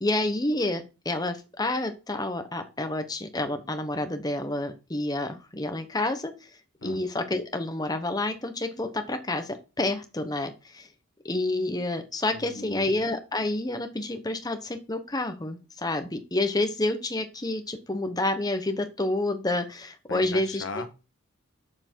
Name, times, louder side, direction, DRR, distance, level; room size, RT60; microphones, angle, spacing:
voice 1, 0.0-10.9 11.2-20.6, left 2 dB, 20° left, 1.0 m, -29 dB
voice 2, 12.3-12.9 20.1-21.0, left 3 dB, 65° left, 1.4 m, -38 dB
7.8 x 6.9 x 4.5 m
head